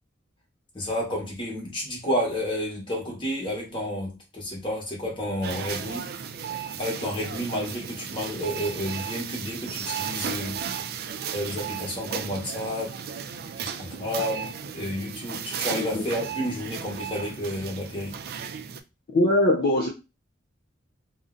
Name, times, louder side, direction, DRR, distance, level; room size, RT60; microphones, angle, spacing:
voice 1, 0.7-6.1 6.8-10.6 11.3-12.9 13.6-18.2, equal, 25° left, 1.1 m, -31 dB
sound 1, 5.4-18.8, right 7 dB, 50° right, 0.3 m, -35 dB
voice 2, 19.1-19.9, left 1 dB, 50° left, 0.4 m, -21 dB
2.6 x 2.1 x 3.7 m
head